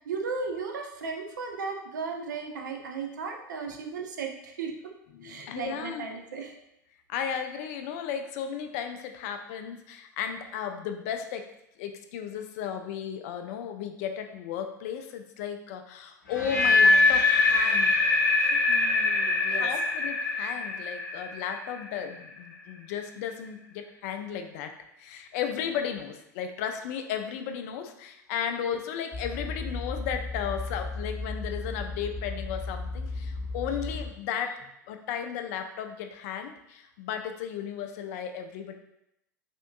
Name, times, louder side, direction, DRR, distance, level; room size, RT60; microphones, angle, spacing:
voice 1, 0.0-4.9 5.2-6.6 18.7-19.7, right 5 dB, 70° right, 4 dB, 0.5 m, -36 dB
voice 2, 5.1-6.1 7.1-11.5 11.8-17.9 18.4-18.9 19.5-24.7 25.0-34.5 34.9-38.7, left 8 dB, 50° left, 6 dB, 0.4 m, -35 dB
sound 1, 16.3-22.3, left 3 dB, 75° left, 0.7 m, -23 dB
sound 2, 29.1-34.1, left 3 dB, 5° left, 0.9 m, -35 dB
3.5 x 2.5 x 2.3 m, 0.82 s
figure-of-eight pair, 80°, 10 cm